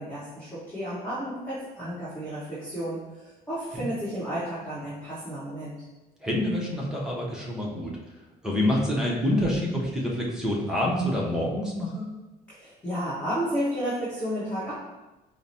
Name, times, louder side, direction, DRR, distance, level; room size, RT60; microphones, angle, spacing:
voice 1, 0.0-5.7 12.5-14.7, equal, 15° left, -12 dB, 1.3 m, -32 dB
voice 2, 6.2-8.0 8.4-12.1, left 1 dB, 5° right, -4 dB, 0.8 m, -27 dB
4.8 x 2.1 x 2.8 m, 1.1 s
cardioid pair, 110°, 17 cm